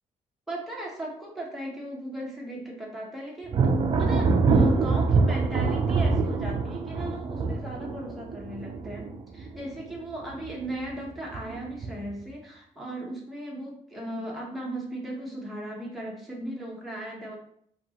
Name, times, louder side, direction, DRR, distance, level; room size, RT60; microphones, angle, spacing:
voice 1, 0.5-17.4, right 1 dB, ahead, -4 dB, 0.9 m, -37 dB
Thunder, 3.5-10.0 10.3-10.9 11.3-12.2, right 4 dB, 40° right, 0.5 m, -25 dB
5.2 x 2.5 x 2.9 m, 0.67 s
cardioid pair, 145°, 14 cm